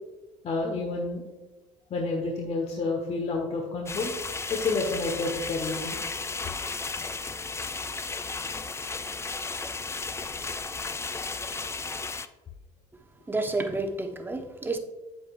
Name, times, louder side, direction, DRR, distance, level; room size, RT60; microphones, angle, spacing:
voice 1, 0.4-1.2 1.9-4.1 4.5-6.0, left 3 dB, 40° left, 1.3 m, -29 dB
sound 1, 3.9-12.3, left 4 dB, 15° left, 0.5 m, -34 dB
voice 2, 13.3-14.8, right 2 dB, 15° right, 1.1 m, -30 dB
8.4 x 7.9 x 2.5 m
hypercardioid pair, 75°, 16 cm